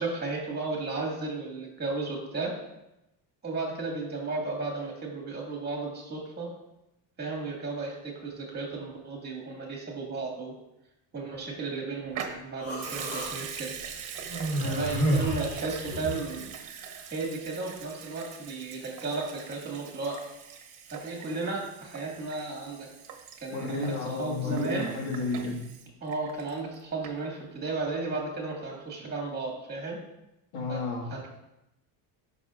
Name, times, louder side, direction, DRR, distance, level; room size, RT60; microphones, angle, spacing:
voice 1, 0.0-2.5 3.4-6.5 7.2-10.5 11.1-13.7 14.6-16.5 17.1-20.2 20.9-22.9 23.4-24.9 26.0-30.0 30.7-30.8 31.1-31.3, right 3 dB, 25° right, -1 dB, 2.1 m, -34 dB
Water tap faucet / Sink (filling or washing) / Liquid, 12.1-26.7 27.0-27.1, right 7 dB, 45° right, 1.1 m, -42 dB
Human voice, 12.6-13.3 14.3-16.2, right 1 dB, 35° left, 2.0 m, -30 dB
voice 2, 14.6-15.0 23.5-25.6 30.5-31.1, left 3 dB, 80° left, -2 dB, 2.0 m, -32 dB
12.0 x 5.7 x 2.5 m, 0.91 s
cardioid pair, 150°, 43 cm